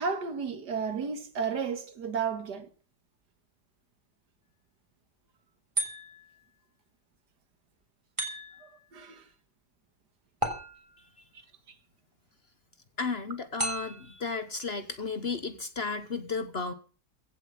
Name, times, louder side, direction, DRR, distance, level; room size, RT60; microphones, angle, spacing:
voice 1, 0.0-2.7 8.6-9.3, right 5 dB, 75° right, 2.2 m, -33 dB
sound 1, 5.8-6.4 8.2-8.8 10.4-11.2 13.6-14.2, right 1 dB, 15° right, 3.4 m, -34 dB
voice 2, 13.0-16.7, left 4 dB, 40° left, 1.2 m, -33 dB
16.0 x 7.6 x 7.4 m
omnidirectional pair, 1.8 m